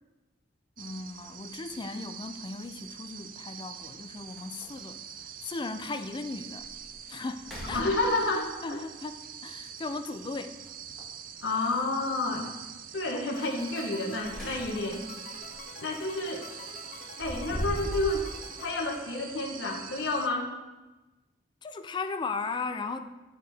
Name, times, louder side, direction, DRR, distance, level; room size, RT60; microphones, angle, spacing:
voice 1, 0.8-6.7 7.1-7.8 8.6-10.6 21.6-23.2, left 3 dB, 25° left, 0.3 m, -37 dB
sound 1, 0.8-20.3, right 8 dB, 45° right, 0.4 m, -45 dB
sound 2, 1.6-1.7 3.4-3.5 3.9-4.0 4.3-4.9 5.4-5.5 6.1-6.2 6.6-6.9 7.3-8.4 10.5-11.2 13.9-15.0 15.4-15.6 16.9-18.2, equal, ahead, 1.7 m, -39 dB
voice 2, 7.7-8.8 11.4-12.5 12.9-15.0 15.8-16.5 17.2-18.3 18.6-20.5, left 2 dB, 70° left, 0.9 m, -30 dB
sound 3, 13.3-19.6, left 4 dB, 50° left, 0.9 m, -48 dB
10.0 x 4.7 x 3.4 m
head